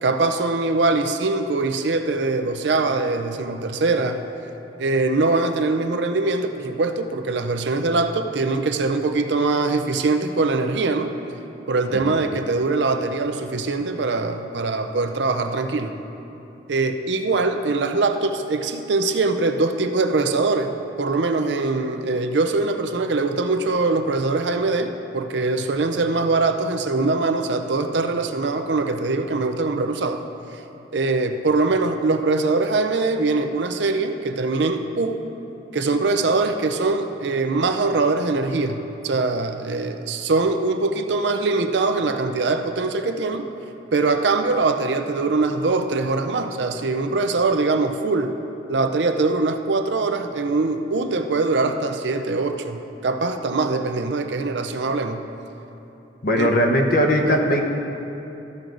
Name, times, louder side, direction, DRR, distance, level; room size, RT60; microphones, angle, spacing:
voice 1, 0.0-4.2 4.8-11.1 11.7-15.9 16.7-30.2 30.9-35.2 35.7-43.5 43.9-48.4 48.7-55.3 56.4-56.5, right 3 dB, 75° right, 7 dB, 0.6 m, -22 dB
voice 2, 56.2-57.6, equal, 55° left, 2 dB, 0.9 m, -19 dB
14.0 x 6.2 x 3.9 m, 3.0 s
head